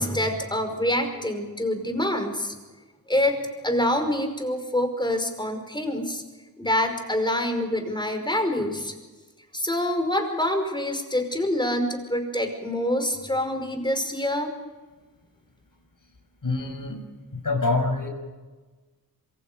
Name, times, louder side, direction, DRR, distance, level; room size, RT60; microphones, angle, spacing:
voice 1, 0.0-2.5 3.1-3.4 3.6-6.2 6.6-8.9 9.5-14.5, left 1 dB, 10° left, 5 dB, 5.3 m, -26 dB
voice 2, 16.4-17.0 17.3-18.1, left 3 dB, 55° left, 5 dB, 5.8 m, -26 dB
26.5 x 24.5 x 5.3 m, 1.3 s
wide cardioid pair, 80°, 38 cm